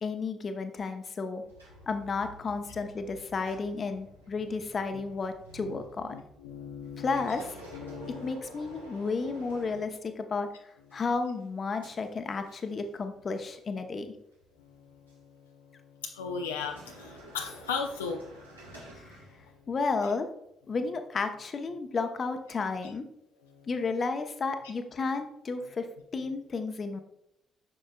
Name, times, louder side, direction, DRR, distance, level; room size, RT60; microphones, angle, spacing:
voice 1, 0.0-1.4 1.9-6.2 7.0-7.6 8.1-14.1 19.0-19.2 19.7-20.3 20.7-23.0 23.7-25.9 26.1-27.0, left 4 dB, 40° left, 7 dB, 0.8 m, -32 dB
sound 1, 1.4-10.4 10.9-13.0 13.3-13.6 14.3-15.2 16.4-19.8, equal, 85° right, 1.3 m, -50 dB
voice 2, 6.1-7.1 7.7-8.3 14.8-15.3 16.0-18.2 23.5-23.7, left 5 dB, 80° left, 2 dB, 0.5 m, -37 dB
7.7 x 6.4 x 2.3 m, 0.77 s
figure-of-eight pair, 45°, 0 cm